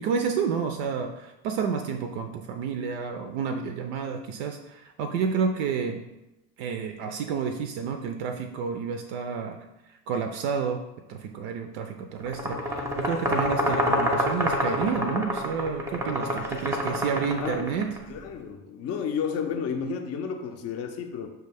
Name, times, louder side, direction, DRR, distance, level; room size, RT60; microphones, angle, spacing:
voice 1, 0.0-6.0 6.6-9.6 10.1-10.8 11.1-17.9, right 6 dB, 55° right, 5 dB, 0.5 m, -30 dB
sound 1, 12.3-18.0, equal, 5° right, 0.6 m, -27 dB
voice 2, 17.4-17.7 18.1-21.3, left 6 dB, 35° left, 6 dB, 0.5 m, -31 dB
5.7 x 2.2 x 3.4 m, 0.96 s
hypercardioid pair, 75°, 42 cm